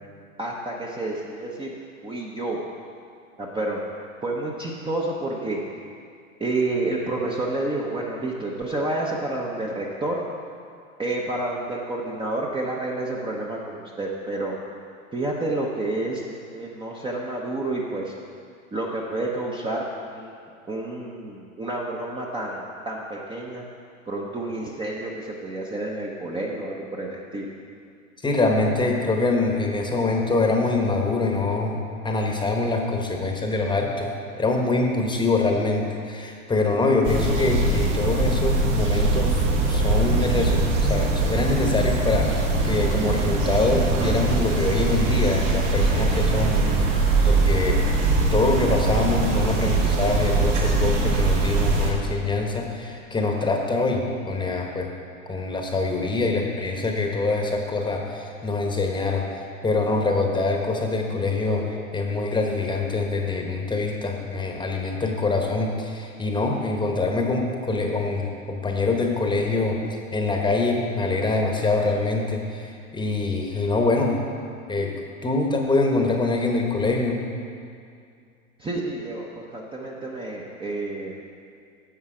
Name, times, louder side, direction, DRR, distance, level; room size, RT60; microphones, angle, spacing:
voice 1, 0.4-1.8 2.0-2.6 3.4-3.8 4.2-5.6 6.4-10.2 11.0-14.5 15.1-16.2 16.5-18.1 18.7-19.8 20.1-20.3 20.7-23.6 24.1-27.5 78.6-81.1, right 2 dB, 10° right, -3 dB, 0.8 m, -29 dB
voice 2, 28.2-34.1 34.4-47.9 48.3-54.9 55.3-69.8 70.1-74.2 74.7-74.9 75.2-77.2, left 3 dB, 10° left, 2 dB, 1.1 m, -24 dB
sound 1, 37.0-51.9, right 3 dB, 65° right, 2.0 m, -22 dB
10.5 x 7.2 x 5.0 m, 2.3 s
hypercardioid pair, 105°, 40 cm